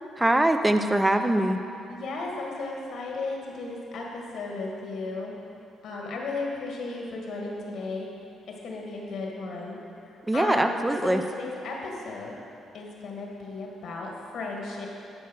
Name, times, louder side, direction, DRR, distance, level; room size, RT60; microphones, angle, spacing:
voice 1, 0.2-1.6 10.3-11.2, right 1 dB, 10° right, 7 dB, 0.6 m, -22 dB
voice 2, 1.9-5.3 5.8-8.1 8.5-9.8 10.3-12.3 12.7-14.9, left 3 dB, 70° left, -1 dB, 1.9 m, -35 dB
12.0 x 4.7 x 6.2 m, 2.7 s
cardioid pair, 90°, 0 cm